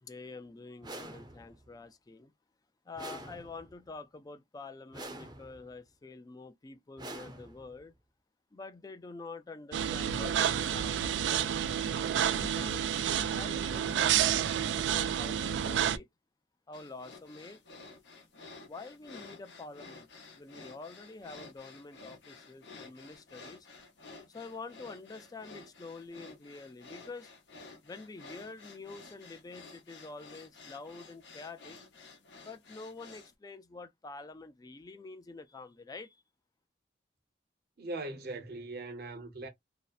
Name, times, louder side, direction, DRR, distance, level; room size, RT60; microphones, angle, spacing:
voice 1, 0.0-2.3 2.9-7.9 8.5-11.5 12.1-12.9 13.3-16.1 16.7-17.6 18.6-20.1 20.4-23.7 24.3-27.3 27.8-31.8 32.4-36.2, left 3 dB, 20° left, 0.3 m, -47 dB
sound 1, 0.8-1.7 2.9-3.9 4.9-5.7 7.0-7.9, right 1 dB, 25° right, 0.6 m, -46 dB
sound 2, 9.7-16.0, right 9 dB, 80° right, 0.3 m, -29 dB
sound 3, 16.7-33.3, left 3 dB, 75° left, 0.8 m, -52 dB
voice 2, 37.8-39.5, right 2 dB, 60° right, 0.7 m, -40 dB
2.7 x 2.1 x 2.3 m
head